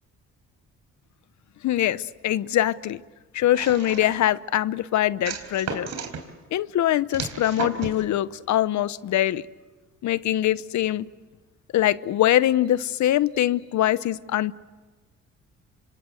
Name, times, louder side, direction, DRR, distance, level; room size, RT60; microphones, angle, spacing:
voice 1, 1.6-3.0 3.3-5.9 6.5-9.4 10.0-11.1 11.7-14.5, left 13 dB, 70° left, 17 dB, 0.8 m, -23 dB
sound 1, 3.5-4.3 5.2-6.2 7.1-8.0, right 5 dB, 65° right, 4.0 m, -33 dB
27.5 x 25.5 x 8.0 m, 1.3 s
cardioid pair, 90°, 30 cm